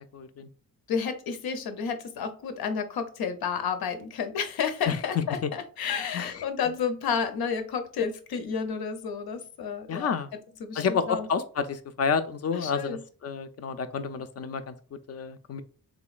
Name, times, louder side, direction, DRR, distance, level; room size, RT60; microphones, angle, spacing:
voice 1, 0.1-0.5 4.9-5.0 5.4-5.5 6.1-6.4 9.9-10.3 10.8-15.6, left 6 dB, 45° left, 11 dB, 0.4 m, -30 dB
voice 2, 0.9-10.1 10.6-11.3 12.5-13.0, left 6 dB, 85° left, 8 dB, 0.7 m, -31 dB
3.8 x 3.0 x 2.3 m, 0.39 s
wide cardioid pair, 145°, 36 cm